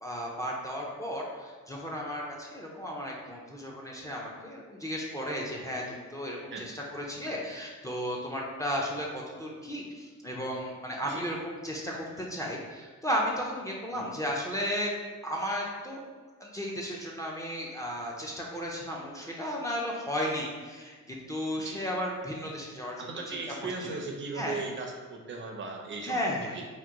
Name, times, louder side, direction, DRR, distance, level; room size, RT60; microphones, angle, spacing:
voice 1, 0.0-14.9 15.2-16.0 16.4-23.4 23.9-24.0 24.3-24.6 26.0-26.6, equal, 10° left, -2 dB, 0.4 m, -34 dB
voice 2, 23.0-26.2 26.5-26.7, right 3 dB, 40° right, 1 dB, 0.5 m, -37 dB
2.9 x 2.1 x 3.5 m, 1.5 s
cardioid pair, 90°, 30 cm